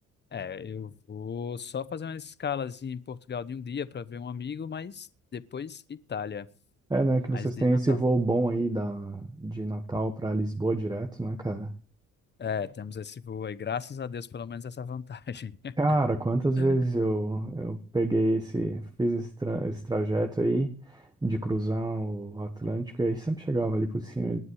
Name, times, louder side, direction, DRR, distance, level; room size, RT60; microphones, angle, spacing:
voice 1, 0.3-6.5 7.3-8.0 12.4-15.7 16.6-16.8, left 7 dB, 35° left, 16 dB, 1.0 m, -36 dB
voice 2, 6.9-11.7 15.8-24.4, right 2 dB, 15° right, 5 dB, 1.6 m, -27 dB
20.0 x 9.5 x 4.9 m, 0.40 s
cardioid pair, 90°, 30 cm